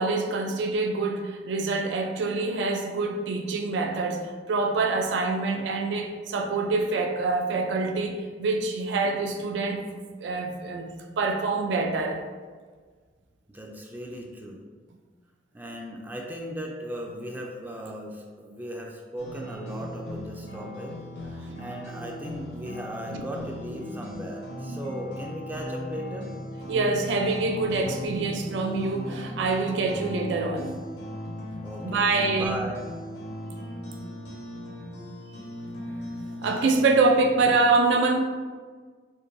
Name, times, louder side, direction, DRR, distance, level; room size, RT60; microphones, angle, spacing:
voice 1, 0.0-10.9 11.2-12.2 21.4-21.6 23.1-23.2 23.8-23.9 24.6-25.0 26.7-30.8 31.8-32.6 36.4-38.2, right 3 dB, 85° right, 4 dB, 0.4 m, -26 dB
voice 2, 13.5-14.7 15.5-21.0 21.2-26.3 31.6-32.8, equal, 10° right, 0 dB, 0.3 m, -37 dB
sound 1, 19.2-36.7, left 1 dB, 75° left, 0.7 m, -38 dB
4.5 x 2.6 x 2.5 m, 1.5 s
head